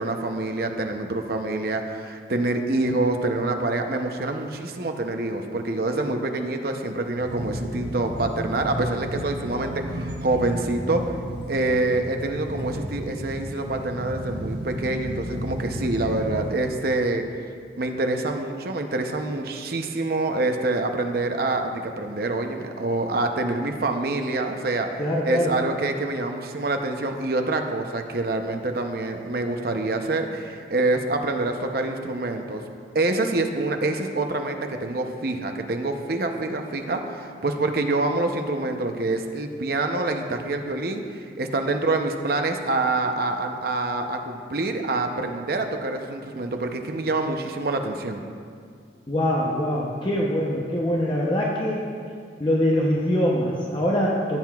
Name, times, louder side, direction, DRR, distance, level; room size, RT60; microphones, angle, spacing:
voice 1, 0.0-11.0 11.5-17.2 17.8-24.9 25.2-32.6 32.9-48.2, right 2 dB, 55° right, 5 dB, 0.7 m, -26 dB
sound 1, 7.2-16.5, equal, 75° right, 1.2 m, -33 dB
voice 2, 25.0-25.6 49.1-51.8 52.4-54.4, equal, 25° left, -3 dB, 0.7 m, -23 dB
15.0 x 7.7 x 2.4 m, 2.2 s
head